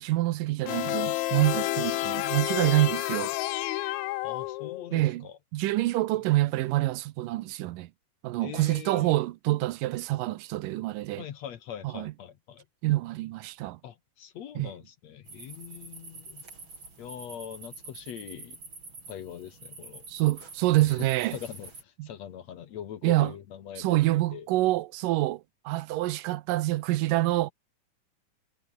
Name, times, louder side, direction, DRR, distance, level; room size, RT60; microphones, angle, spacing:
voice 1, 0.0-3.3 4.9-5.3 5.5-7.9 8.2-11.2 11.9-12.1 12.8-13.8 14.6-14.7 20.1-21.4 22.0-22.1 23.0-23.3 23.8-27.5, right 17 dB, 80° right, 2.3 m, -26 dB
sound 1, 0.7-5.0, left 18 dB, 80° left, 1.7 m, -30 dB
voice 2, 4.2-5.4 8.4-9.2 11.1-12.7 13.8-16.4 17.0-18.6 19.1-20.1 20.8-24.0 24.3-24.5, left 9 dB, 60° left, 2.3 m, -42 dB
sound 2, 15.3-21.8, right 3 dB, 35° right, 6.6 m, -47 dB
omnidirectional pair, 4.0 m